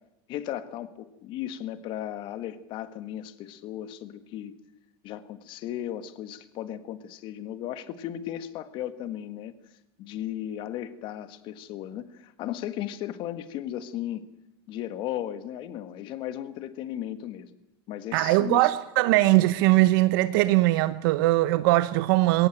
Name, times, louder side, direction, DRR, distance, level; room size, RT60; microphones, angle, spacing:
voice 1, 0.3-4.6 5.0-9.5 10.0-14.3 14.7-17.5 17.9-18.7, left 11 dB, 35° left, 1.5 m, -36 dB
voice 2, 18.1-22.5, right 18 dB, 55° right, 1.0 m, -21 dB
21.0 x 18.0 x 9.0 m
supercardioid pair, 155°, 13 cm